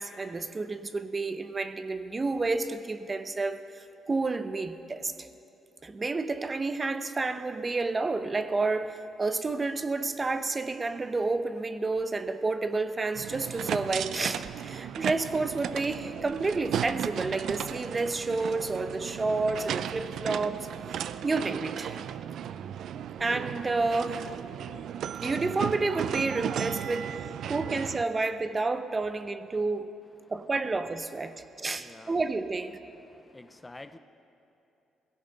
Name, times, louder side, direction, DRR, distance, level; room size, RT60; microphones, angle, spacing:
voice 1, 0.0-5.3 5.8-20.7 21.2-22.0 23.2-24.3 25.2-29.9 30.3-32.8, right 3 dB, 30° right, 10 dB, 0.7 m, -30 dB
sound 1, 13.1-28.0, right 9 dB, 70° right, 0.4 m, -35 dB
voice 2, 31.8-32.1 33.2-34.0, left 2 dB, 15° left, 11 dB, 0.5 m, -47 dB
18.0 x 16.0 x 4.0 m, 2.8 s
cardioid pair, 90°, 0 cm